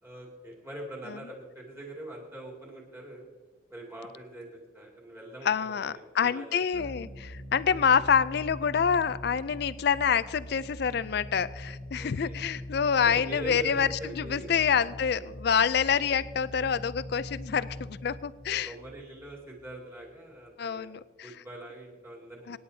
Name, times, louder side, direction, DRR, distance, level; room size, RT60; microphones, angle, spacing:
voice 1, 0.0-3.3 3.7-4.5 4.7-6.9 7.6-7.7 12.0-12.4 13.0-14.5 15.9-16.0 18.5-22.6, right 1 dB, 10° right, -3 dB, 2.4 m, -43 dB
voice 2, 5.5-18.7 20.6-21.3 22.5-22.6, left 7 dB, 55° left, 16 dB, 0.4 m, -27 dB
sound 1, 6.7-20.0, left 1 dB, 80° left, 1.6 m, -42 dB
25.0 x 10.0 x 2.7 m, 1.4 s
head